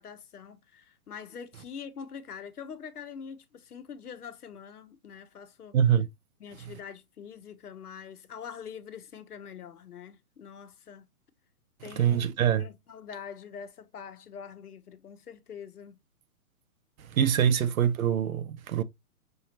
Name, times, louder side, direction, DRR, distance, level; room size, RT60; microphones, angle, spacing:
voice 1, 0.0-5.8 6.4-11.1 11.8-12.3 12.6-16.0, left 7 dB, 90° left, 1.1 m, -44 dB
voice 2, 5.7-6.1 12.0-12.7 17.0-18.8, right 9 dB, 70° right, 0.8 m, -24 dB
5.6 x 3.0 x 2.8 m
hypercardioid pair, 135°, 44 cm